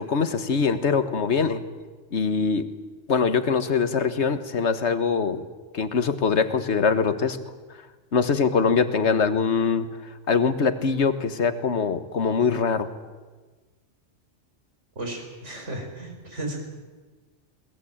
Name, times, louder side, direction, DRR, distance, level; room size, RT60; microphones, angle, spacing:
voice 1, 0.0-1.6 2.1-2.7 3.1-5.4 5.7-7.4 8.1-9.9 10.3-12.9, left 5 dB, 70° left, 11 dB, 1.6 m, -23 dB
voice 2, 14.9-16.7, right 1 dB, 85° right, 3 dB, 5.1 m, -34 dB
21.0 x 19.5 x 8.8 m, 1.3 s
omnidirectional pair, 1.2 m